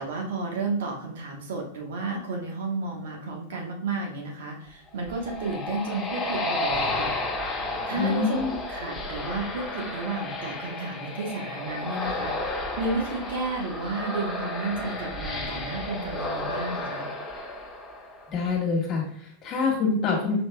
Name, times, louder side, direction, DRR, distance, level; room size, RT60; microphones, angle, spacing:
voice 1, 0.0-7.5 7.9-8.4 8.7-17.1, right 3 dB, 70° right, 1 dB, 1.1 m, -32 dB
sound 1, 4.9-18.4, left 2 dB, 15° left, 1.2 m, -32 dB
voice 2, 8.0-8.5 18.3-20.4, left 4 dB, 40° left, -1 dB, 1.6 m, -26 dB
4.9 x 3.2 x 2.3 m, 0.63 s
hypercardioid pair, 100°, 0 cm